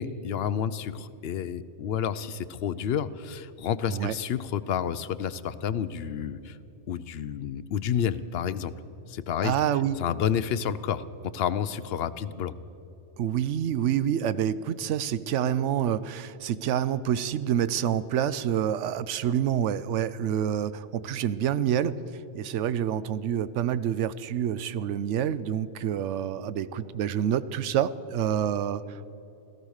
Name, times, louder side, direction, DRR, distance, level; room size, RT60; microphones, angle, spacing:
voice 1, 0.0-6.6 6.9-8.7 9.1-9.5 10.0-12.5, left 8 dB, 65° left, 14 dB, 0.8 m, -30 dB
voice 2, 9.4-10.0 13.2-22.0 22.3-29.0, right 9 dB, 85° right, 16 dB, 0.9 m, -27 dB
16.5 x 13.5 x 6.4 m, 3.0 s
omnidirectional pair, 1.2 m